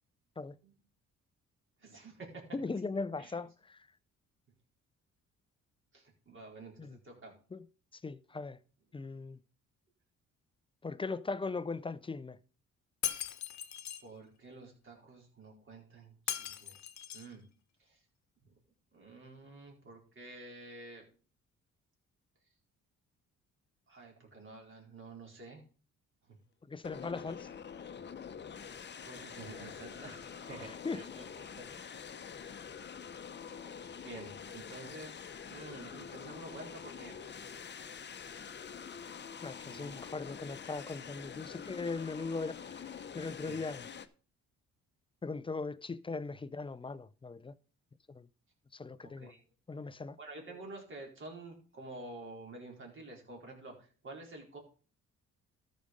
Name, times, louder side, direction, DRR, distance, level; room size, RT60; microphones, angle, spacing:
voice 1, 1.8-2.4 3.2-3.4 5.9-7.3 14.0-16.8 17.1-17.4 17.8-18.0 18.9-21.0 23.9-25.6 26.3-26.4 29.0-31.2 31.5-32.1 33.5-37.4 39.7-40.0 43.4-43.6 49.0-49.4 50.2-54.6, right 2 dB, 40° right, 4.4 m, -50 dB
voice 2, 2.5-3.9 6.8-7.0 7.5-7.6 7.9-8.6 8.9-9.4 10.8-12.4 26.7-27.5 30.8-31.0 39.4-42.8 43.1-43.9 45.2-47.5 48.1-48.3 48.7-49.3 49.7-50.2, left 4 dB, 15° left, 0.5 m, -39 dB
Shatter, 13.0-14.0 16.3-17.3, left 10 dB, 65° left, 1.0 m, -38 dB
sound 1, 26.8-44.1, left 7 dB, 35° left, 0.8 m, -46 dB
13.0 x 5.1 x 5.3 m
cardioid pair, 90°, 30 cm